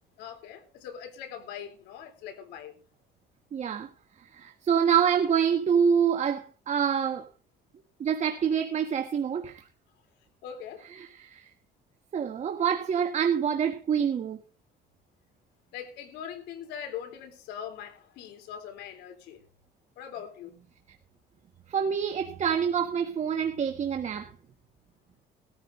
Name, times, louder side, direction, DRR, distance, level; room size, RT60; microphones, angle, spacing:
voice 1, 0.2-2.8 10.4-10.8 15.7-19.4 20.0-20.5, left 8 dB, 90° left, 3.6 m, -41 dB
voice 2, 3.5-3.9 4.3-7.3 8.0-9.6 10.9-11.5 12.1-14.4 21.7-24.3, right 7 dB, 45° right, 1.6 m, -26 dB
19.5 x 14.0 x 2.7 m
cardioid pair, 110°, 17 cm